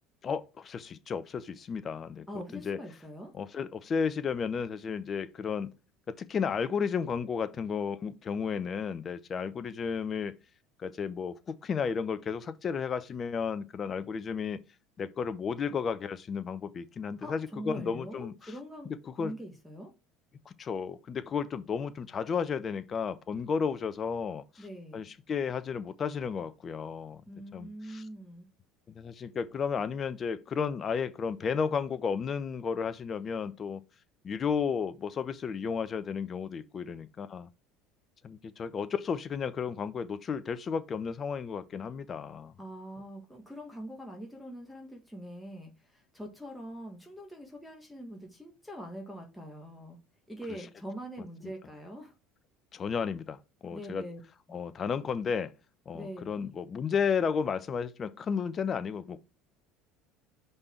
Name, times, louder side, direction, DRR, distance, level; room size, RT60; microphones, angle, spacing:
voice 1, 0.2-2.3 2.5-2.8 3.3-5.7 6.1-10.3 10.8-14.6 15.0-18.3 19.2-19.3 20.5-24.6 24.9-27.2 27.5-28.0 28.9-33.8 34.2-37.5 38.2-42.5 52.7-54.0 54.5-55.5 55.9-59.2, left 6 dB, 35° left, 0.7 m, -33 dB
voice 2, 2.3-3.3 17.2-19.9 24.6-25.0 27.3-28.5 42.6-50.0 50.3-52.1 53.7-54.2 55.9-56.5, equal, ahead, 1.7 m, -43 dB
5.4 x 4.0 x 4.5 m
hypercardioid pair, 70°, 0 cm